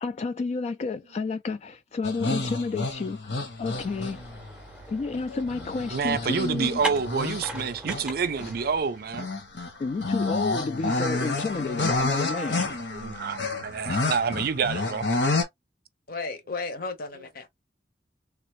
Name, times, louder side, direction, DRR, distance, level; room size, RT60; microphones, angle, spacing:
voice 1, 0.0-4.2 4.9-6.8 9.8-12.7, left 4 dB, 40° left, 0.3 m, -31 dB
sound 1, 2.0-4.5 5.1-8.1 8.4-8.5 9.1-15.4, left 2 dB, 80° left, 1.2 m, -29 dB
sound 2, 3.7-8.8, right 1 dB, 5° right, 0.7 m, -39 dB
voice 2, 5.9-9.3 12.9-15.1, right 5 dB, 60° right, 0.5 m, -28 dB
voice 3, 16.1-17.6, left 3 dB, 55° left, 0.8 m, -34 dB
3.4 x 2.6 x 3.1 m
head